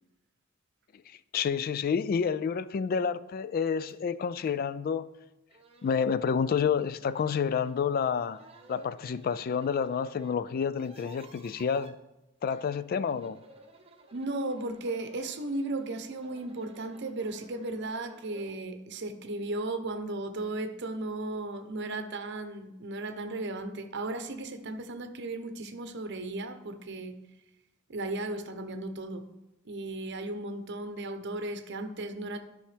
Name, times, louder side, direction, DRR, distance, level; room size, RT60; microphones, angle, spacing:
voice 1, 1.3-5.1 5.8-8.4 8.7-12.0 12.4-13.4, left 6 dB, 45° left, 15 dB, 0.3 m, -29 dB
sound 1, 3.9-4.0 4.5-4.6 5.2-5.3 5.5-6.2 7.0-7.8 8.3-10.3 10.6-11.9 12.9-18.6, right 1 dB, 30° right, 0.8 m, -54 dB
voice 2, 14.1-27.2 27.9-29.3 29.7-32.4, right 2 dB, 60° right, 8 dB, 0.8 m, -35 dB
12.0 x 5.6 x 3.3 m, 0.96 s
head